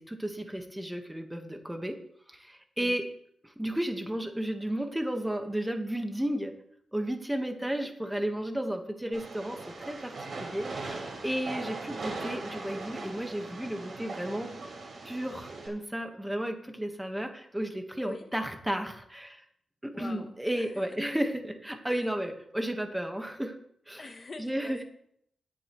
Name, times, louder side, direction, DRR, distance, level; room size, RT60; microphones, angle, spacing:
voice 1, 0.1-2.0 2.3-3.1 3.4-6.5 6.9-14.5 15.0-19.4 19.8-23.6 23.9-24.0 24.4-24.8, right 1 dB, 5° right, 5 dB, 1.3 m, -33 dB
Train, 9.1-15.7, right 3 dB, 55° right, 3.6 m, -40 dB
voice 2, 19.9-20.9 21.9-22.1 24.0-24.8, left 3 dB, 35° left, 7 dB, 0.9 m, -45 dB
18.0 x 7.7 x 3.1 m, 0.70 s
wide cardioid pair, 125°, 0 cm